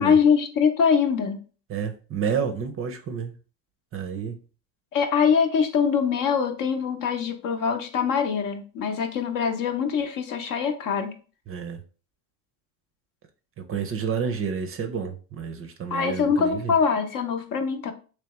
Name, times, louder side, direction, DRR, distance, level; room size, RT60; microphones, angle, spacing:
voice 1, 0.0-1.4 4.9-11.1 15.9-17.9, left 6 dB, 50° left, 0.8 m, -23 dB
voice 2, 1.7-3.3 3.9-4.4 11.5-11.8 13.6-16.7, right 6 dB, 30° right, 0.5 m, -30 dB
3.3 x 3.1 x 2.9 m
supercardioid pair, 95°, 42 cm